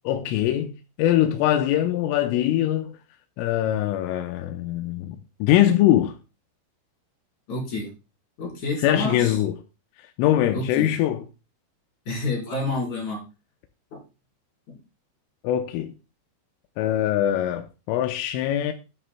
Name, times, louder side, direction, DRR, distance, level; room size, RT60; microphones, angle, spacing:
voice 1, 0.1-0.7 1.0-3.0 3.4-6.1 8.8-9.6 10.2-11.2 15.4-15.9 16.8-18.7, left 12 dB, 85° left, 3.2 m, -22 dB
voice 2, 7.5-7.9 8.4-9.4 10.5-10.9 12.1-13.2 13.9-14.0, left 2 dB, 40° left, 5.1 m, -29 dB
13.0 x 9.4 x 2.2 m
omnidirectional pair, 5.7 m